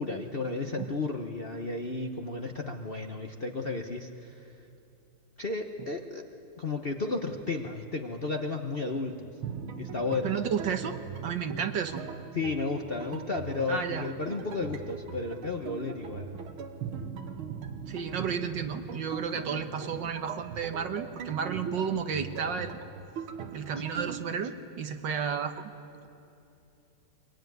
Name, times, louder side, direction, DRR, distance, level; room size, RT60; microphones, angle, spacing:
voice 1, 0.0-4.5 5.4-6.2 6.6-9.3 9.8-10.3 12.3-16.3 23.8-24.0, left 3 dB, 35° left, 3 dB, 1.0 m, -33 dB
sound 1, 9.4-24.2, right 7 dB, 80° right, 2.0 m, -40 dB
voice 2, 10.2-12.0 13.7-14.0 17.9-22.8 23.5-25.7, right 6 dB, 65° right, 7 dB, 1.7 m, -32 dB
23.0 x 22.0 x 9.4 m, 2.7 s
omnidirectional pair, 2.3 m